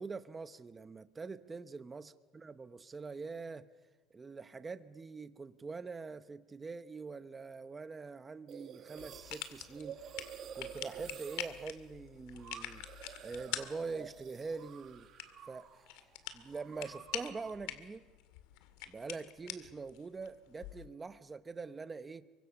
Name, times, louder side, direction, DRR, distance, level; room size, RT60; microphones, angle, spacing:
voice 1, 0.0-3.7 4.1-10.0 10.5-12.9 13.2-15.1 15.5-18.1 18.9-22.3, right 4 dB, 15° right, 13 dB, 0.8 m, -44 dB
sound 1, 8.5-15.9 16.1-17.7, right 8 dB, 35° right, 1.7 m, -50 dB
sound 2, 9.0-20.9, left 12 dB, 65° left, 2.1 m, -46 dB
29.5 x 24.0 x 7.1 m, 1.2 s
cardioid pair, 180°, 0 cm